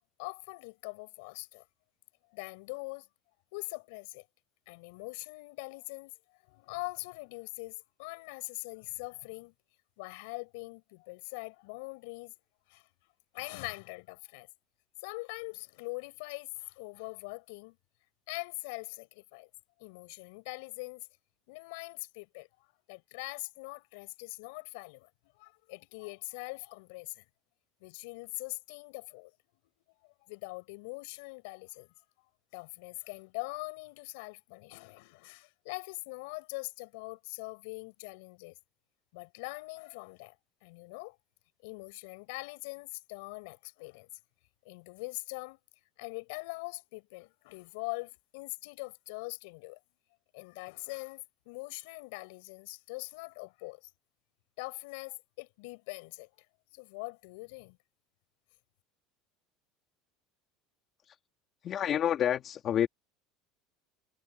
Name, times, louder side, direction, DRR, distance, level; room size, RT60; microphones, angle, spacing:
voice 1, 0.2-1.6 2.3-3.1 3.5-4.2 4.7-6.1 6.5-9.5 10.0-12.3 12.7-12.8 13.3-14.5 15.0-17.8 18.3-19.5 19.8-21.1 21.5-22.5 22.9-25.1 25.4-27.2 27.8-29.3 30.0-31.9 32.5-38.6 39.1-40.3 40.6-41.2 41.6-44.1 44.6-45.6 46.0-49.8 50.3-53.9 54.6-56.3 56.7-57.8, left 28 dB, 75° left, 6.2 m, -42 dB
voice 2, 61.6-62.9, left 10 dB, 30° left, 2.2 m, -28 dB
cardioid pair, 165°, 0 cm